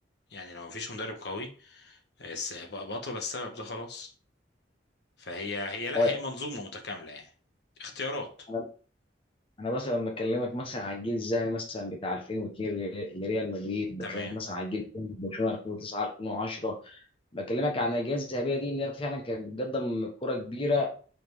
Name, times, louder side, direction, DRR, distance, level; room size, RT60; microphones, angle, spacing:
voice 1, 0.3-4.1 5.2-7.3 7.8-8.5 14.0-14.3, left 2 dB, 65° left, 3 dB, 1.4 m, -37 dB
voice 2, 9.6-17.0 17.3-20.9, left 2 dB, 30° left, 0 dB, 1.1 m, -31 dB
5.5 x 4.3 x 4.6 m, 0.40 s
head